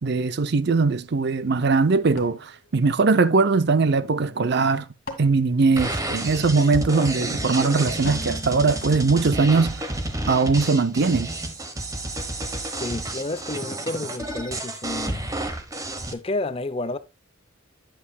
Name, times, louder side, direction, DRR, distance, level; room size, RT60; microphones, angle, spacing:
voice 1, 0.0-4.9 5.2-9.7 10.3-11.3, right 4 dB, 55° right, 0.6 m, -20 dB
sound 1, 2.2-3.7 4.6-6.5 8.0-9.6, left 2 dB, 50° left, 1.9 m, -42 dB
sound 2, 5.8-16.1, right 1 dB, 15° right, 1.0 m, -30 dB
voice 2, 12.7-15.3 16.1-17.0, left 2 dB, 30° left, 0.6 m, -30 dB
10.0 x 8.4 x 2.3 m
head